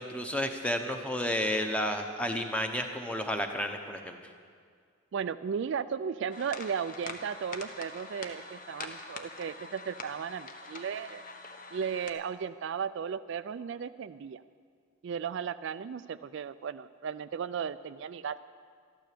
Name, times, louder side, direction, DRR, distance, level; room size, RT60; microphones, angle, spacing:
voice 1, 0.0-4.2, left 1 dB, 5° left, 4 dB, 0.9 m, -31 dB
voice 2, 5.1-11.2 11.7-14.4 15.0-18.4, right 7 dB, 55° right, 12 dB, 0.3 m, -35 dB
sound 1, 6.3-12.1, left 3 dB, 40° left, 1.0 m, -44 dB
13.5 x 12.5 x 6.8 m, 2.1 s
head